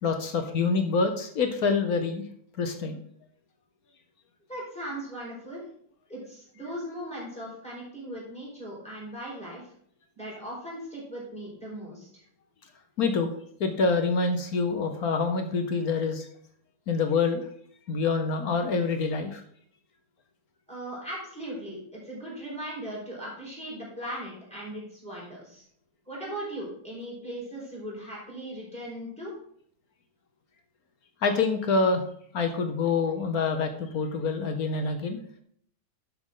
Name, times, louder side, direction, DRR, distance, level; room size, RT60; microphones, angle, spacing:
voice 1, 0.0-2.2 2.6-3.0 13.0-13.3 13.6-16.2 16.9-17.4 17.9-19.4 31.2-32.0 32.3-35.2, left 4 dB, 60° left, 6 dB, 1.3 m, -26 dB
voice 2, 4.5-5.6 6.1-9.6 10.2-12.2 20.7-25.6 26.1-29.3, right 1 dB, 5° left, -6 dB, 4.4 m, -38 dB
11.0 x 6.7 x 3.8 m, 0.64 s
omnidirectional pair, 1.9 m